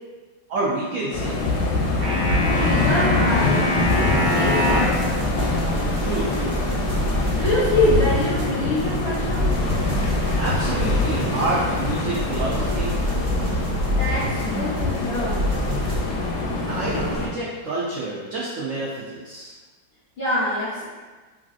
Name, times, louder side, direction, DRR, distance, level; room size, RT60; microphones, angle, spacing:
voice 1, 0.5-1.4 6.0-6.8 10.4-13.0 16.7-19.5, right 2 dB, 85° right, -6 dB, 0.7 m, -28 dB
sound 1, 1.1-17.3, left 2 dB, 90° left, 1.3 m, -24 dB
sound 2, 2.0-5.0, left 1 dB, 40° right, 0.9 m, -24 dB
voice 2, 2.4-5.1 7.3-9.6 13.8-15.4 20.2-20.8, left 1 dB, 60° left, -11 dB, 0.6 m, -25 dB
sound 3, 3.9-16.1, equal, 70° right, 1.1 m, -27 dB
3.1 x 2.5 x 2.4 m, 1.3 s
omnidirectional pair, 1.9 m